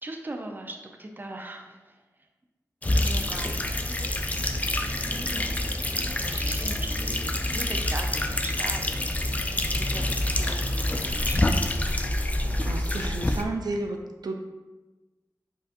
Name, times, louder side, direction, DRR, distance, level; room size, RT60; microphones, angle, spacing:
voice 1, 0.0-2.0 2.9-3.6 4.7-7.2 7.5-11.7, right 2 dB, 30° right, 3 dB, 0.6 m, -40 dB
sound 1, 2.8-13.4, left 1 dB, 20° left, 0.4 m, -27 dB
voice 2, 12.6-14.0 14.2-14.4, right 2 dB, 75° right, 3 dB, 0.4 m, -32 dB
5.1 x 4.0 x 2.5 m, 1.1 s
wide cardioid pair, 65°, 7 cm